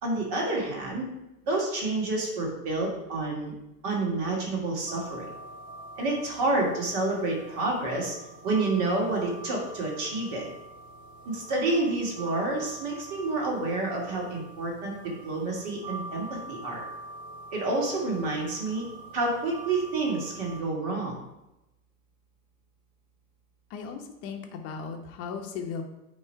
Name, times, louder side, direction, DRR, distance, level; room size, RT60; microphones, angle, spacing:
voice 1, 0.0-1.1 1.5-3.5 3.8-5.3 6.0-8.1 8.4-10.5 11.3-15.0 15.2-16.8 17.5-18.9 19.1-21.1, right 2 dB, 40° right, -2 dB, 2.5 m, -29 dB
sound 1, 4.9-20.6, right 2 dB, 20° right, 0.5 m, -44 dB
voice 2, 23.7-25.8, left 6 dB, 30° left, 4 dB, 1.0 m, -36 dB
9.0 x 3.2 x 4.4 m, 0.92 s
figure-of-eight pair, 95°, 47 cm